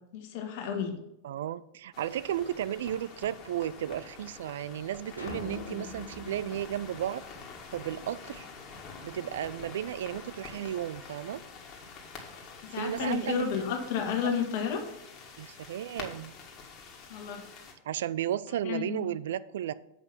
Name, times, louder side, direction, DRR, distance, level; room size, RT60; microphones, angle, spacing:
voice 1, 0.1-1.0 12.7-14.8 17.1-17.4 18.6-19.1, left 7 dB, 50° left, 4 dB, 1.6 m, -31 dB
voice 2, 1.2-7.2 7.7-8.5 9.0-11.4 12.7-13.4 14.2-14.3 15.4-16.3 17.9-19.7, right 11 dB, 60° right, 17 dB, 0.3 m, -34 dB
sound 1, 1.9-17.7, left 4 dB, 35° left, 1.9 m, -47 dB
sound 2, 5.2-7.7, left 2 dB, 80° left, 1.6 m, -43 dB
7.9 x 5.3 x 5.9 m, 0.82 s
figure-of-eight pair, 90°, 0 cm